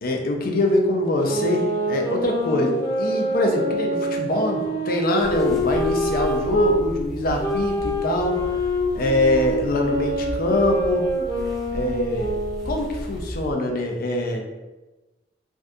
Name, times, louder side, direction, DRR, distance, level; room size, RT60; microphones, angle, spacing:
voice 1, 0.0-8.5 8.9-11.0 11.7-12.3 12.7-14.4, left 1 dB, 55° left, 2 dB, 0.5 m, -23 dB
sound 1, 1.2-6.7 7.4-13.0, equal, 20° left, 0.8 m, -26 dB
sound 2, 5.2-13.5, equal, ahead, 0.5 m, -35 dB
3.5 x 2.4 x 2.6 m, 1.1 s
head